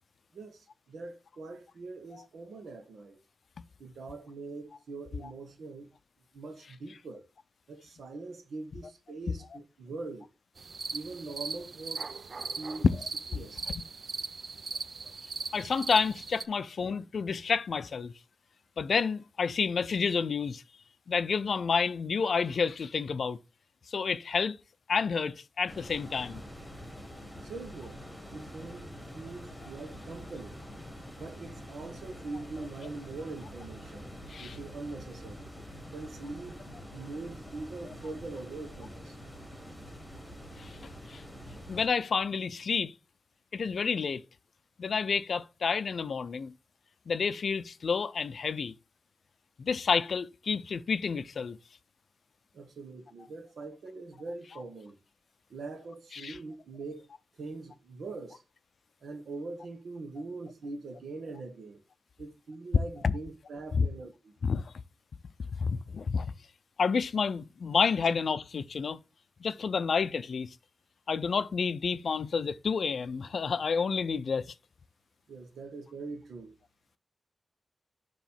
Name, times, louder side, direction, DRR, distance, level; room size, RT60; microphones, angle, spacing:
voice 1, 0.3-3.2 3.8-5.9 6.3-7.3 7.7-10.3 10.9-12.1 12.6-12.9 13.3-13.7 27.4-28.0 28.3-30.6 31.2-34.1 34.4-35.5 35.9-39.2 52.5-55.0 55.5-57.1 57.4-58.4 59.0-61.8 62.2-64.3 75.3-76.5, right 3 dB, 80° right, 1.4 m, -42 dB
sound 1, 10.6-16.5, right 4 dB, 40° right, 0.4 m, -39 dB
voice 2, 15.5-18.1 18.8-20.6 21.1-23.4 23.9-24.6 24.9-26.4 34.3-34.6 40.6-40.7 41.1-41.2 41.7-42.9 43.5-44.2 44.8-46.5 47.1-48.7 49.6-51.6 56.1-56.4 63.0-63.1 63.8-63.9 64.4-64.6 65.6-66.3 66.8-69.0 69.4-70.5 71.1-74.5, left 5 dB, 55° left, 0.4 m, -29 dB
sound 2, 25.7-41.9, equal, 5° left, 1.7 m, -46 dB
7.1 x 3.0 x 5.7 m
wide cardioid pair, 175°, 0 cm